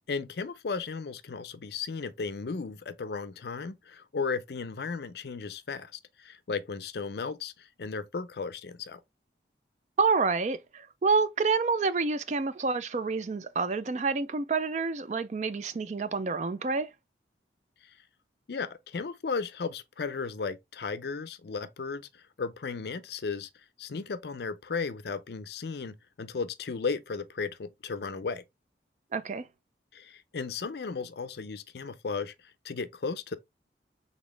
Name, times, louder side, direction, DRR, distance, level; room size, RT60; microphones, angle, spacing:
voice 1, 0.1-9.0 17.8-17.9 18.5-23.5 23.8-28.4 29.9-33.4, left 5 dB, 65° left, 0.5 m, -35 dB
voice 2, 10.0-16.9 29.1-29.5, right 4 dB, 40° right, 0.4 m, -28 dB
4.1 x 3.5 x 3.1 m
head